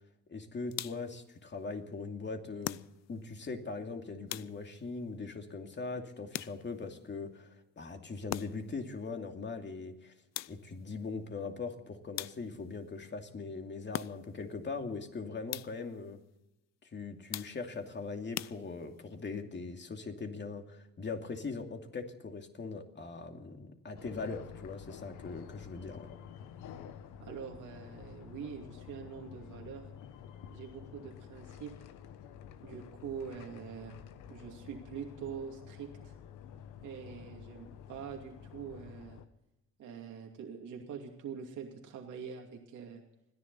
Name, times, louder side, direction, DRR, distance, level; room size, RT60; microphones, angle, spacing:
voice 1, 0.3-2.8 3.1-10.1 10.5-16.2 16.8-26.1, left 4 dB, 35° left, 4 dB, 2.6 m, -41 dB
sound 1, 0.7-1.2 2.6-3.3 4.3-4.9 6.3-6.9 8.3-8.8 10.3-10.9 12.2-12.7 13.9-14.5 15.5-16.0 17.3-17.8 18.3-19.1, left 14 dB, 60° left, 0.5 m, -42 dB
sound 2, 24.0-39.3, left 8 dB, 90° left, 1.2 m, -50 dB
voice 2, 27.2-29.9 30.5-31.9 32.6-34.0 34.3-36.1 36.8-39.2 39.8-43.0, right 7 dB, 80° right, 1 dB, 2.6 m, -44 dB
30.0 x 11.0 x 4.1 m, 0.87 s
cardioid pair, 90°, 30 cm